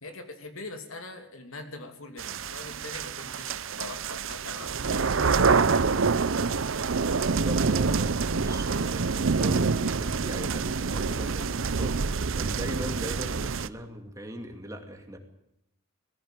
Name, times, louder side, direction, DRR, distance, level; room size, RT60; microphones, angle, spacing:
voice 1, 0.0-5.1, left 2 dB, 80° left, 6 dB, 2.9 m, -42 dB
sound 1, 2.2-13.7, right 4 dB, 70° right, 0.7 m, -26 dB
voice 2, 6.7-15.2, equal, 15° right, 4 dB, 2.5 m, -40 dB
19.0 x 15.0 x 9.1 m, 0.80 s
head